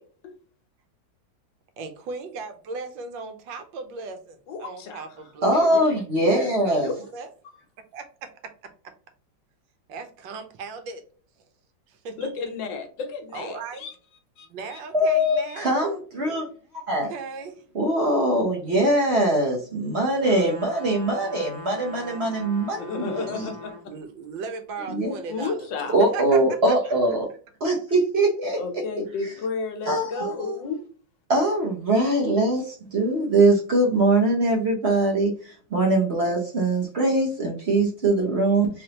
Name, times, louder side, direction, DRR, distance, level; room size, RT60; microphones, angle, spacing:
voice 1, 1.8-5.5 6.3-6.8 7.1-7.3 7.9-8.3 9.9-11.0 11.9-12.3 13.3-13.9 14.5-15.7 17.0-17.6 23.1-23.4 23.9-26.2, right 4 dB, 85° right, 7 dB, 1.5 m, -37 dB
voice 2, 4.5-5.1 5.7-5.8 6.8-6.9 12.2-13.9 14.4-14.8 15.2-15.7 22.8-23.7 25.3-25.9 28.6-30.8, left 4 dB, 75° left, 6 dB, 1.5 m, -32 dB
voice 3, 5.4-6.9 14.9-16.4 16.9-17.1 17.7-23.5 24.9-25.1 25.9-27.2 27.6-28.6 29.9-30.6 31.3-32.6 32.9-35.3 35.7-38.7, right 1 dB, 55° right, -1 dB, 0.7 m, -22 dB
sound 1, 20.2-23.9 24.4-24.5, left 2 dB, 10° right, 0.7 m, -41 dB
3.5 x 3.4 x 2.8 m, 0.43 s
omnidirectional pair, 2.0 m